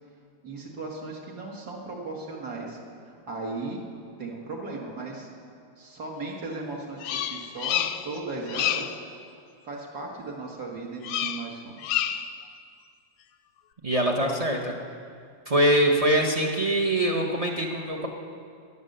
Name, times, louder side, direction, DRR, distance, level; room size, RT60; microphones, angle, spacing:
voice 1, 0.4-2.8 3.1-3.8 4.2-5.3 5.8-9.0 9.6-12.0, right 3 dB, 55° right, -2 dB, 2.3 m, -36 dB
Bird vocalization bird call bird song, 7.0-8.2 8.5-9.0 11.0-11.5 11.8-12.4, left 11 dB, 90° left, 1.4 m, -28 dB
voice 2, 13.8-14.7 15.5-18.1, right 1 dB, 35° right, 1 dB, 0.6 m, -23 dB
13.5 x 11.0 x 6.7 m, 2.3 s
omnidirectional pair, 2.1 m